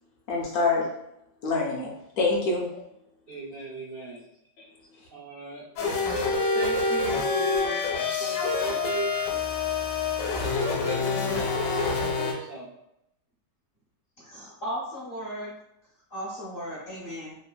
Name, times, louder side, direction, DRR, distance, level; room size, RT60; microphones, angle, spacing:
voice 1, 0.3-1.0 1.4-2.8 4.6-4.7, left 3 dB, 70° left, -2 dB, 1.0 m, -26 dB
voice 2, 3.3-4.2 5.1-5.6 6.0-9.2 10.3-12.7, right 2 dB, 80° right, -6 dB, 0.5 m, -37 dB
sound 1, 5.8-12.3, left 4 dB, 85° left, 1.2 m, -27 dB
voice 3, 14.2-15.5 16.1-17.4, equal, 55° left, -6 dB, 0.6 m, -36 dB
3.2 x 2.2 x 2.2 m, 0.81 s
omnidirectional pair, 1.8 m